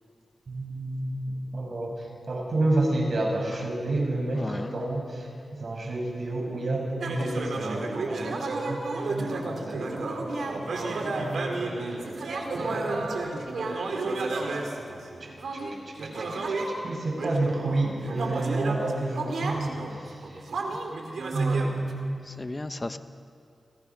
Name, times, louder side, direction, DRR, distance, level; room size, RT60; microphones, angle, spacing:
voice 1, 0.5-1.2 1.5-12.0 12.5-13.5 15.2-20.4 21.3-22.3, right 2 dB, 65° right, 1 dB, 6.7 m, -30 dB
voice 2, 4.3-4.7 12.2-12.3 22.2-23.0, left 2 dB, 30° left, 9 dB, 1.3 m, -35 dB
sound 1, 7.0-16.8 17.2-21.9, right 3 dB, 80° right, 3.4 m, -32 dB
29.0 x 26.0 x 6.1 m, 2.4 s
cardioid pair, 50°, 0 cm